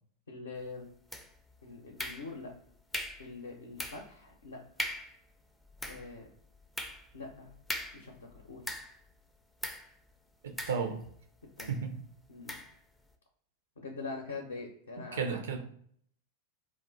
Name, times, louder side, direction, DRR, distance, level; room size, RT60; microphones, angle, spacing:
voice 1, 0.3-0.9 1.6-2.5 3.2-4.6 5.9-6.3 7.1-7.5 7.9-8.6 11.6-11.7 12.3-12.6 13.8-15.6, left 3 dB, 70° left, 1 dB, 0.6 m, -44 dB
sound 1, 1.1-1.5 2.0-2.5 2.9-3.3 3.8-4.1 4.4-4.5 4.8-5.2 5.6-9.1 9.6-9.9 10.6-11.2 11.6-11.8 12.5-12.8, left 1 dB, 5° left, 0.4 m, -40 dB
voice 2, 10.4-11.0 11.7-12.0 15.1-15.6, right 5 dB, 60° right, 6 dB, 0.4 m, -33 dB
2.4 x 2.1 x 3.8 m, 0.64 s
figure-of-eight pair, 90°, 0 cm